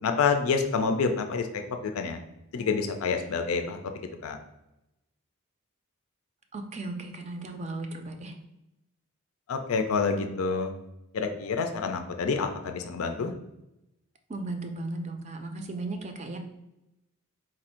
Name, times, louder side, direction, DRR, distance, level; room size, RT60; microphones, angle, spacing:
voice 1, 0.0-2.2 2.5-3.9 4.2-4.4 9.5-10.7 11.1-13.3, left 5 dB, 75° left, 6 dB, 0.4 m, -28 dB
voice 2, 6.5-8.4 14.3-16.4, right 2 dB, 30° right, 5 dB, 0.4 m, -36 dB
4.2 x 2.5 x 4.2 m, 0.91 s
head